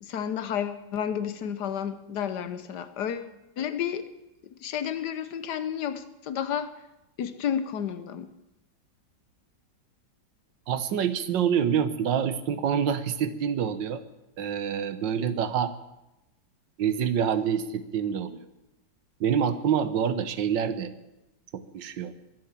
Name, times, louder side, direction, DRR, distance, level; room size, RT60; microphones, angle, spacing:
voice 1, 0.0-3.3 3.6-4.0 4.4-6.7 7.2-8.3, left 8 dB, 70° left, 12 dB, 1.4 m, -31 dB
voice 2, 10.7-14.0 14.4-15.7 16.8-18.4 19.2-20.9 21.5-22.1, right 8 dB, 85° right, 12 dB, 1.7 m, -26 dB
22.5 x 7.7 x 7.3 m, 0.95 s
omnidirectional pair, 1.9 m